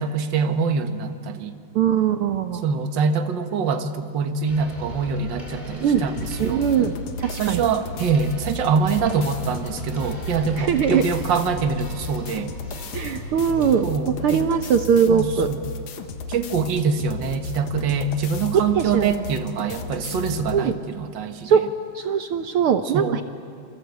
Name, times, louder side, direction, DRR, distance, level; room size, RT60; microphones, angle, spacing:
voice 1, 0.0-1.6 2.6-6.6 7.4-12.5 13.8-14.4 15.1-15.6 16.3-21.6 22.9-23.2, right 5 dB, 50° right, 7 dB, 1.6 m, -24 dB
voice 2, 1.7-2.6 5.8-6.0 6.4-7.6 10.6-11.0 12.9-13.9 14.2-15.5 18.5-19.1 20.5-20.8 21.4-21.6 21.9-23.2, right 7 dB, 70° right, 8 dB, 1.3 m, -21 dB
sound 1, 4.5-13.7, equal, 15° left, 5.3 m, -39 dB
sound 2, 6.2-20.6, left 3 dB, 70° left, 2.7 m, -34 dB
28.5 x 24.5 x 8.3 m, 2.3 s
omnidirectional pair, 3.4 m